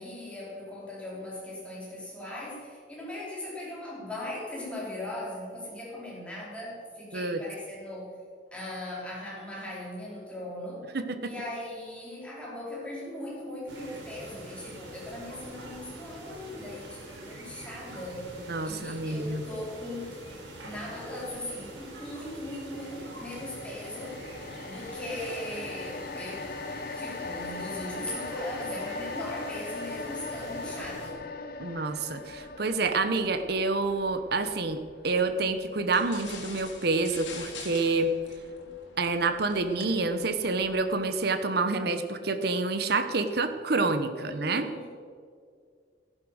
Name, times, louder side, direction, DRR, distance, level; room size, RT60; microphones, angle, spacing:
voice 1, 0.0-8.1 8.5-10.9 11.2-18.2 18.6-20.2 20.6-24.2 24.6-26.5 27.0-31.3 44.1-44.9, left 1 dB, 5° left, -5 dB, 4.5 m, -39 dB
voice 2, 10.9-11.3 18.5-19.4 31.6-38.1 39.0-44.7, right 3 dB, 60° right, 8 dB, 0.9 m, -28 dB
sound 1, 13.7-31.1, right 1 dB, 85° right, 4.0 m, -45 dB
sound 2, 22.7-37.1 37.4-37.6, left 3 dB, 55° left, 1.0 m, -40 dB
sound 3, 35.9-41.2, left 4 dB, 90° left, 3.0 m, -46 dB
14.5 x 11.5 x 6.4 m, 2.1 s
head